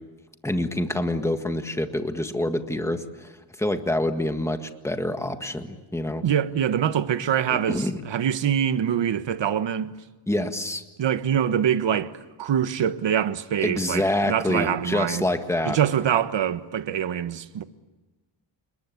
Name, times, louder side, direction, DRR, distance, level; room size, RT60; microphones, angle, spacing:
voice 1, 0.4-3.3 3.6-6.2 7.5-8.0 10.3-10.8 13.6-15.8, left 1 dB, 5° left, 1.7 m, -26 dB
voice 2, 6.2-9.9 11.0-15.3 15.6-17.6, right 9 dB, 70° right, 1.4 m, -24 dB
29.5 x 21.0 x 8.6 m
wide cardioid pair, 120°, 45 cm